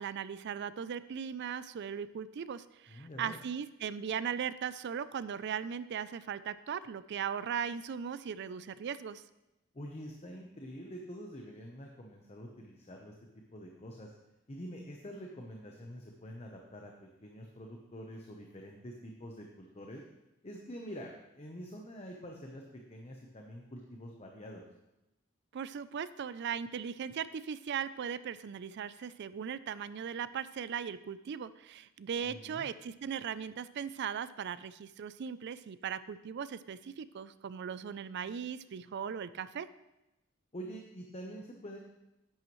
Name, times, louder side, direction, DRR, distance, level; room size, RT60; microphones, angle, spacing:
voice 1, 0.0-9.2 25.5-39.7, right 7 dB, 55° right, 15 dB, 0.4 m, -38 dB
voice 2, 2.9-3.4 9.7-13.1 13.5-14.1 14.5-16.9 17.2-20.0 20.4-22.6 22.9-24.6 32.3-32.7 40.5-41.8, equal, 30° left, 1 dB, 0.9 m, -46 dB
10.5 x 8.8 x 3.1 m, 0.95 s
head